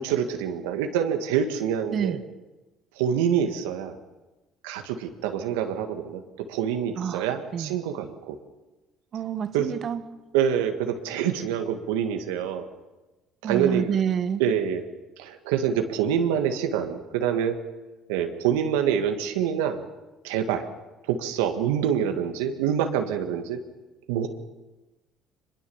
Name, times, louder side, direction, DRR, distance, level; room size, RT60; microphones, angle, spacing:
voice 1, 0.0-2.2 3.0-4.0 4.6-8.4 9.5-9.7 10.3-12.7 13.4-14.0 14.4-14.8 15.2-17.6 18.1-19.8 20.2-20.7 21.1-23.6 24.1-24.3, right 8 dB, 90° right, 5 dB, 1.9 m, -26 dB
voice 2, 9.1-10.0 13.4-14.4, right 8 dB, 50° right, 12 dB, 1.4 m, -27 dB
23.5 x 21.5 x 7.2 m, 1.1 s
supercardioid pair, 75°, 0 cm